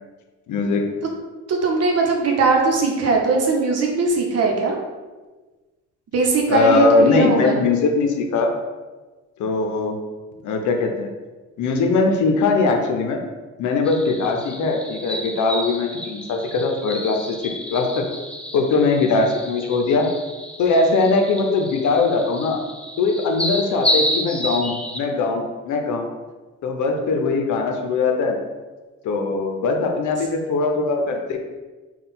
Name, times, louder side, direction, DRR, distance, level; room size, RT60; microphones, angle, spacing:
voice 1, 0.5-0.8 6.5-8.5 9.4-10.0 10.4-11.1 11.6-13.2 13.6-18.1 18.5-20.1 20.6-22.6 23.0-26.1 26.6-28.4 29.0-31.4, left 3 dB, 75° left, 3 dB, 0.7 m, -20 dB
voice 2, 1.5-4.8 6.1-7.5, right 3 dB, 55° right, 1 dB, 0.9 m, -19 dB
sound 1, 13.8-25.0, equal, 5° left, 0.4 m, -30 dB
3.9 x 2.4 x 3.9 m, 1.3 s
cardioid pair, 90°, 30 cm